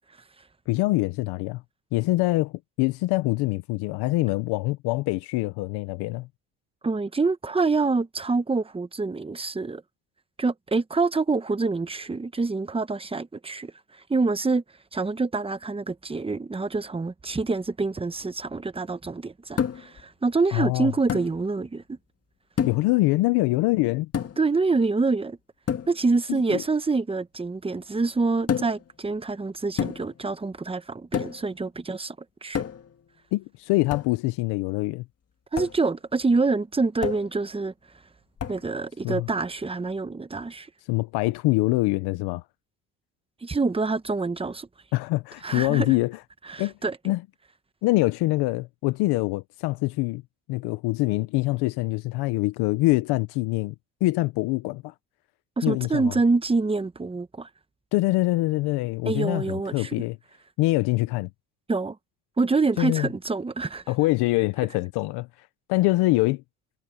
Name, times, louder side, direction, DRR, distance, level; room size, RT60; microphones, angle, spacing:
voice 1, 0.7-1.6 1.9-6.3 20.5-20.9 22.7-24.1 26.3-26.6 33.3-35.0 39.0-39.3 40.9-42.4 44.9-46.2 46.6-46.7 47.0-47.2 47.8-50.2 50.5-53.7 54.0-54.9 55.6-56.2 57.9-60.2 60.6-61.3 62.8-63.1 63.9-66.4, left 20 dB, 90° left, 0.8 m, -24 dB
voice 2, 6.8-9.8 10.4-13.7 14.1-14.6 14.9-21.8 24.4-25.4 25.9-32.2 32.4-32.6 35.5-37.7 38.5-40.7 43.4-44.7 45.4-45.9 46.5-47.0 55.6-57.5 59.0-60.0 61.7-62.0 62.4-63.8, right 3 dB, 15° right, 1.0 m, -26 dB
sound 1, 19.6-20.0 21.1-21.4 22.6-23.0 24.1-24.5 25.7-26.0 28.5-28.9 29.8-30.2 31.1-31.5 32.6-33.0 33.9-34.2 35.6-35.8 37.0-37.4 38.4-38.7, left 8 dB, 40° left, 1.9 m, -29 dB
cardioid pair, 110°, 38 cm